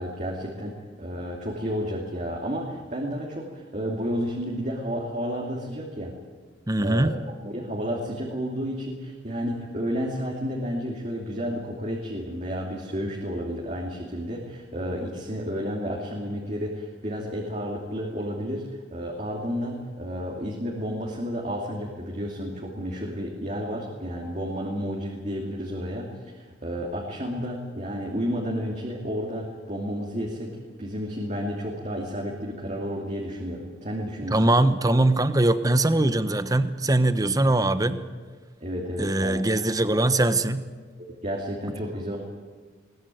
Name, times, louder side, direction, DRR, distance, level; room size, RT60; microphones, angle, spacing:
voice 1, 0.0-6.1 6.8-7.1 7.4-30.5 30.8-34.5 38.6-39.4 41.0-42.2, equal, 35° right, -2 dB, 2.9 m, -31 dB
voice 2, 6.7-7.1 34.3-38.0 39.0-40.6, right 2 dB, 20° right, 11 dB, 1.0 m, -21 dB
21.5 x 20.0 x 9.4 m, 1.4 s
head